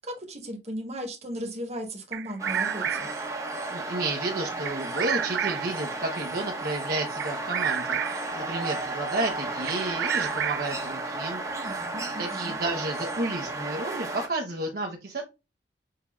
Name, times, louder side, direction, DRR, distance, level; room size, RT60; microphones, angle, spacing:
voice 1, 0.0-3.1 11.5-12.5, equal, 40° right, 3 dB, 1.3 m, -36 dB
Bird vocalization bird call bird song, 2.1-3.3 4.7-5.8 7.2-8.4 9.7-10.9, right 9 dB, 80° right, 0.4 m, -30 dB
sound 1, 2.4-14.3, right 2 dB, 20° right, 0.9 m, -33 dB
voice 2, 3.7-11.4 12.2-15.2, right 2 dB, 60° right, 1 dB, 0.8 m, -31 dB
6.6 x 2.7 x 2.3 m, 0.26 s
head